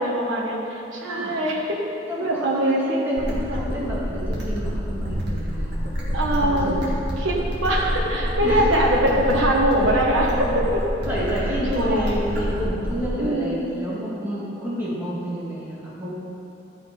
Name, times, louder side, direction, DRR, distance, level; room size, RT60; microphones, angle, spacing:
voice 1, 0.0-1.8 2.2-3.1 3.4-3.6 6.1-6.8 7.2-10.5 11.7-12.2 13.2-13.6, right 1 dB, 75° right, -3 dB, 1.4 m, -23 dB
voice 2, 2.1-5.8 6.4-7.0 8.4-8.8 10.4-10.6 11.0-16.1, equal, 10° right, -9 dB, 2.5 m, -29 dB
sound 1, 3.2-13.2, equal, 55° right, 2.2 m, -27 dB
13.5 x 6.1 x 5.4 m, 2.9 s
head